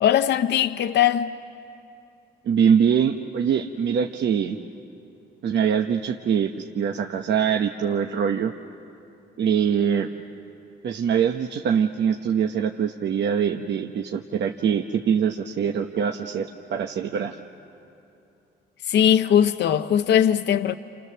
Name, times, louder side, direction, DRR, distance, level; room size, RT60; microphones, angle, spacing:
voice 1, 0.0-1.3 18.9-20.7, left 10 dB, 60° left, 0.6 m, -20 dB
voice 2, 2.4-4.6 5.4-8.5 9.4-10.1 10.8-17.4, right 7 dB, 60° right, 0.9 m, -23 dB
29.5 x 28.0 x 6.8 m
cardioid pair, 90°, 20 cm